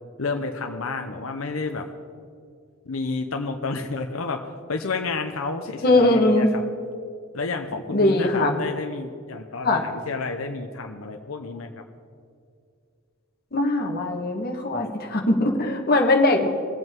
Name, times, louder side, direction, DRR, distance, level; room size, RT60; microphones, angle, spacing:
voice 1, 0.2-1.9 2.9-4.4 4.7-6.6 7.3-11.8, left 3 dB, 85° left, 4 dB, 0.8 m, -30 dB
voice 2, 5.8-6.5 7.9-8.6 9.6-9.8 13.5-16.5, left 2 dB, 50° left, 2 dB, 1.5 m, -20 dB
23.0 x 8.0 x 3.7 m, 2.3 s
head